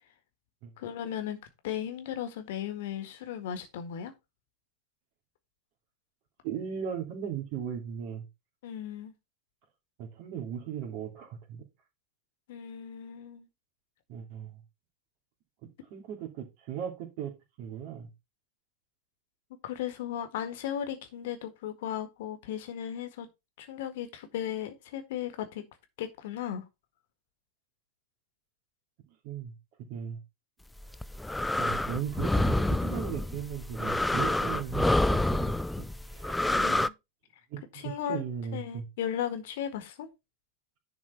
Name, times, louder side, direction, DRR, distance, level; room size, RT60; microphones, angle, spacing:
voice 1, 0.8-1.4 1.6-4.1 8.6-9.1 12.5-13.5 19.6-23.3 23.6-25.6 26.0-26.6 36.5-36.9 37.7-38.2 38.5-40.1, left 10 dB, 55° left, 1.6 m, -36 dB
voice 2, 6.4-8.3 10.0-11.7 14.1-14.6 15.9-17.3 17.6-18.1 29.2-29.5 29.9-30.2 31.5-36.5 37.5-38.8, right 8 dB, 45° right, 2.6 m, -37 dB
sound 1, 30.8-36.9, left 2 dB, 5° left, 0.4 m, -28 dB
10.5 x 4.3 x 4.4 m
figure-of-eight pair, 90°, 0 cm